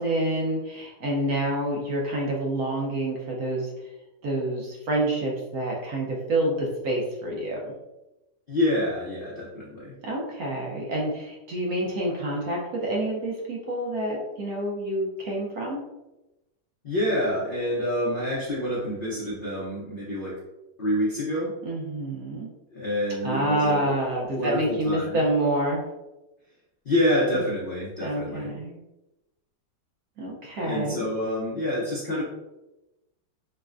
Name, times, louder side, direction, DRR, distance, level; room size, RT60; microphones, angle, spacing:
voice 1, 0.0-3.7 4.2-7.7 10.0-15.8 21.6-22.5 23.2-25.8 27.3-27.4 28.0-28.8 30.2-31.1, right 1 dB, 65° right, -2 dB, 1.1 m, -27 dB
voice 2, 8.5-9.9 16.8-20.4 20.8-21.5 22.7-23.9 24.4-25.2 26.8-28.5 30.6-32.2, left 1 dB, 60° left, -6 dB, 0.5 m, -27 dB
4.8 x 2.1 x 2.4 m, 1.0 s
omnidirectional pair, 1.9 m